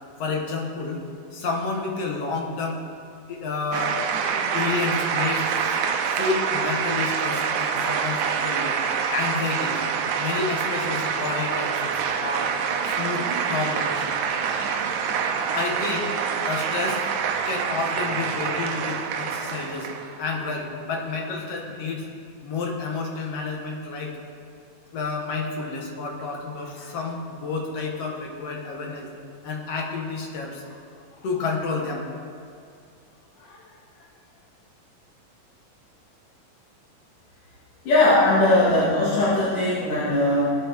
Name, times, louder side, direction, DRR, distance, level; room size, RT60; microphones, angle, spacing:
voice 1, 0.2-1.0 1.3-2.8 3.3-5.8 6.1-8.7 9.1-9.8 10.2-12.5 12.8-13.9 15.5-16.1 16.4-17.1 17.5-22.1 22.4-24.1 24.9-29.1 29.4-30.8 31.2-32.1 33.4-33.7 34.0-34.1, left 4 dB, 55° left, 0 dB, 2.2 m, -30 dB
sound 1, 3.7-20.2, right 6 dB, 75° right, 1.8 m, -26 dB
voice 2, 37.9-40.5, left 1 dB, 70° left, -12 dB, 4.3 m, -19 dB
19.5 x 8.3 x 3.6 m, 2.3 s
omnidirectional pair, 3.8 m